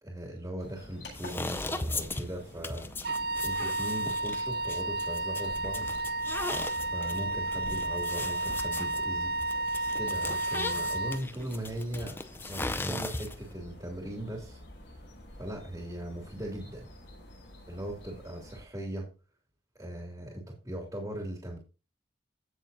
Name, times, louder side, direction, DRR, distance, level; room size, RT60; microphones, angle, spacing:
voice 1, 0.0-5.9 6.8-9.3 10.0-12.2 12.5-14.6 15.4-16.9 17.7-19.1 19.7-21.6, right 1 dB, 20° right, 0 dB, 2.5 m, -39 dB
sound 1, 0.6-18.6, left 1 dB, 90° left, 6.3 m, -49 dB
sound 2, 1.1-13.5, left 2 dB, 10° left, 0.5 m, -38 dB
Wind instrument woodwind instrument, 3.0-11.2, right 2 dB, 55° right, 0.4 m, -32 dB
16.0 x 6.7 x 2.7 m, 0.31 s
head